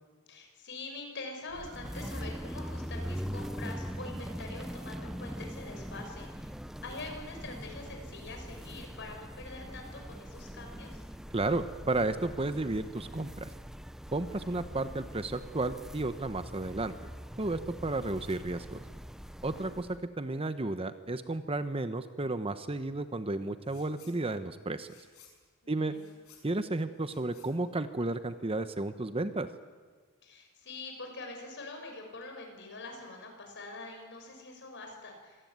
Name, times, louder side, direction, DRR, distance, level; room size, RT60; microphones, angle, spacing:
voice 1, 0.3-6.5 6.8-11.0 25.6-26.1 30.2-35.5, left 2 dB, 55° left, 3 dB, 6.4 m, -45 dB
sound 1, 1.5-20.0, equal, ahead, 0.6 m, -42 dB
voice 2, 11.3-13.5 14.1-16.9 17.4-18.8 19.4-24.9 25.7-25.9 26.4-29.5, right 2 dB, 25° right, 11 dB, 0.9 m, -33 dB
sound 2, 23.6-24.2 24.5-28.4, left 8 dB, 80° left, 6.5 m, -60 dB
25.5 x 18.0 x 9.5 m, 1.5 s
head